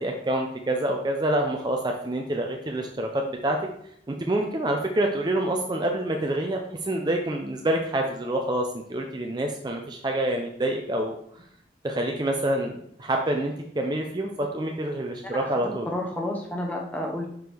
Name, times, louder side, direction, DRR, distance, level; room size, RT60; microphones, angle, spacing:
voice 1, 0.0-3.6 4.1-11.2 11.8-15.9, right 1 dB, 25° right, 2 dB, 0.5 m, -27 dB
voice 2, 15.2-15.5 15.9-17.3, left 1 dB, 10° left, 0 dB, 0.9 m, -30 dB
6.0 x 4.8 x 3.4 m, 0.69 s
head